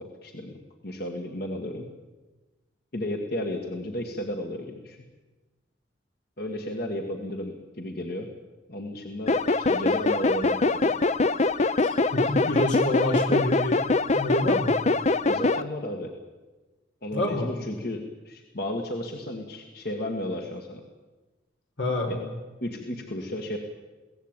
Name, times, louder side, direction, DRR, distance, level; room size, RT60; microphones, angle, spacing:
voice 1, 0.0-1.9 2.9-5.0 6.4-8.3 8.7-10.9 15.2-16.1 17.0-20.8 22.1-22.2 22.6-23.6, left 1 dB, 60° left, 3 dB, 1.9 m, -33 dB
sound 1, 9.3-15.6, left 3 dB, 40° left, 0.7 m, -23 dB
voice 2, 11.8-13.8 14.1-14.7 17.1-17.5 21.8-22.2, left 1 dB, 90° left, 3 dB, 4.6 m, -27 dB
23.0 x 17.0 x 9.0 m, 1.2 s
head